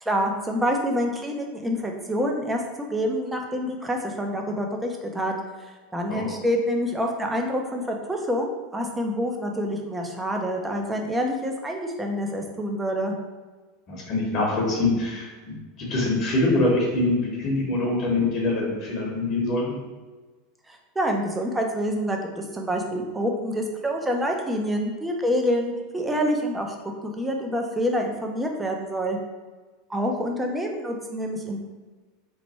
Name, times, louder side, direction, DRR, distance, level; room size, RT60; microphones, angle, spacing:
voice 1, 0.0-5.3 5.6-13.1 20.7-26.7 27.0-29.2 29.9-31.6, equal, 10° right, 2 dB, 0.5 m, -27 dB
voice 2, 13.9-19.8, left 2 dB, 45° left, -2 dB, 1.0 m, -24 dB
3.1 x 2.1 x 4.1 m, 1.3 s
supercardioid pair, 120°, 0 cm